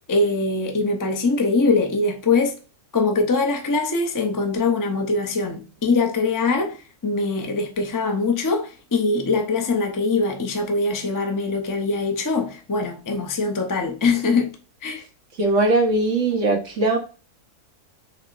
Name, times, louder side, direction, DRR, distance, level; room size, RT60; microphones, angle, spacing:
voice 1, 0.1-2.6 2.9-14.5 14.8-15.0, left 3 dB, 30° left, 0.3 m, -22 dB
voice 2, 15.4-17.0, right 2 dB, 55° right, 1.3 m, -20 dB
6.7 x 3.1 x 2.5 m
omnidirectional pair, 1.6 m